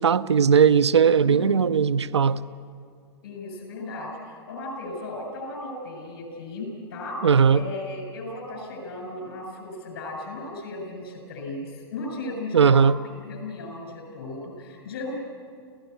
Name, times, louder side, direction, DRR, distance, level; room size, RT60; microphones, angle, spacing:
voice 1, 0.0-2.4 7.2-7.6 12.5-12.9, right 6 dB, 80° right, 12 dB, 0.7 m, -18 dB
voice 2, 1.2-1.7 3.2-12.8 13.3-15.2, left 2 dB, 65° left, 3 dB, 7.0 m, -36 dB
28.0 x 16.0 x 8.0 m, 2.2 s
figure-of-eight pair, 110°, 14 cm